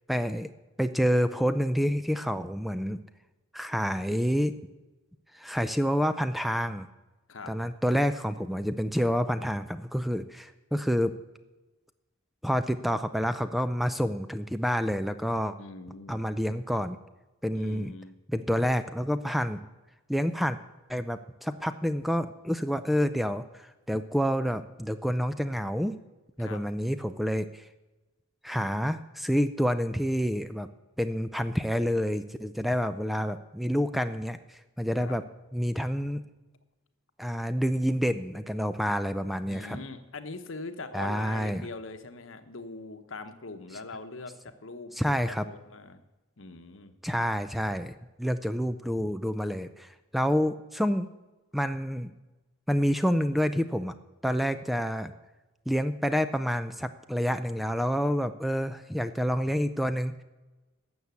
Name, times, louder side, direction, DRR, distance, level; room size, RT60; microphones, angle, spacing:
voice 1, 0.1-0.5 0.8-3.0 3.5-4.5 5.3-6.9 7.5-11.1 12.4-15.6 16.1-17.0 17.4-17.9 18.3-19.6 20.1-20.6 20.9-26.0 26.4-27.7 28.4-30.7 31.0-35.2 35.5-36.2 37.2-39.8 40.9-41.7 45.0-45.4 47.0-51.1 51.5-52.1 52.7-53.9 54.2-55.1 55.7-60.2, equal, ahead, 11 dB, 0.4 m, -28 dB
voice 2, 15.6-16.2 17.5-18.1 26.4-26.6 35.0-35.2 39.5-46.0 46.4-46.9, left 3 dB, 70° left, 9 dB, 1.0 m, -42 dB
12.5 x 7.2 x 8.2 m, 1.1 s
head